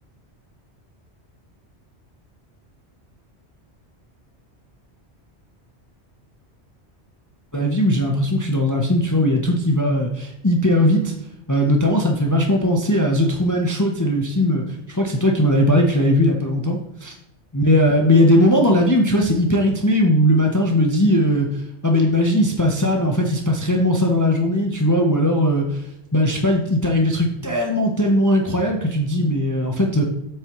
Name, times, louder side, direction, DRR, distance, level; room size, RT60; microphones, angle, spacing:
voice 1, 7.5-11.1 11.5-17.1 17.5-21.5 21.8-25.9 26.1-30.0, left 1 dB, 20° left, 1 dB, 0.7 m, -19 dB
8.1 x 6.5 x 3.0 m, 0.82 s
omnidirectional pair, 1.2 m